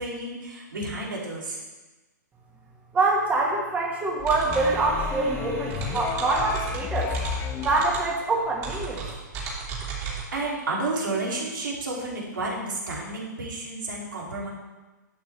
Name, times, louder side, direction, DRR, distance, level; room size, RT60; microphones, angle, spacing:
voice 1, 0.0-1.6 10.3-14.5, right 2 dB, 90° right, -3 dB, 2.9 m, -31 dB
voice 2, 2.9-7.1 7.6-9.0, right 3 dB, 15° right, -2 dB, 1.6 m, -25 dB
sound 1, 4.2-10.2, right 5 dB, 30° right, 2.8 m, -35 dB
sound 2, 4.5-7.9, left 9 dB, 20° left, 0.4 m, -32 dB
sound 3, 4.5-8.2, right 3 dB, 45° right, 1.5 m, -42 dB
11.5 x 7.7 x 3.4 m, 1.2 s
hypercardioid pair, 135°, 10 cm